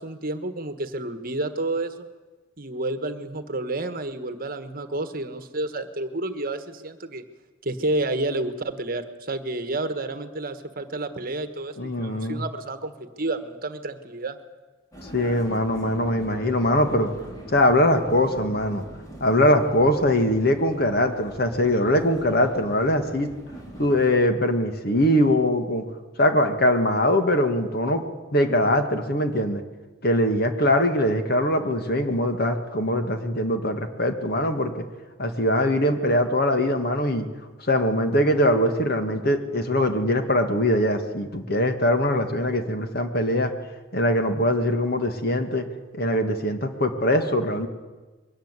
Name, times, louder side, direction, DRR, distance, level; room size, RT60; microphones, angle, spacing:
voice 1, 0.0-2.1 2.6-7.2 7.6-14.4, right 2 dB, 45° right, 10 dB, 1.4 m, -30 dB
voice 2, 11.8-12.4 15.1-17.1 17.5-18.8 19.2-23.3 23.8-25.8 26.2-28.0 28.3-29.6 30.0-34.9 35.2-37.2 37.6-43.5 43.9-45.7 45.9-47.7, left 1 dB, 50° left, 7 dB, 1.9 m, -22 dB
Vehicle, 14.9-24.2, equal, 15° left, 4.2 m, -42 dB
22.0 x 18.0 x 8.3 m, 1.3 s
head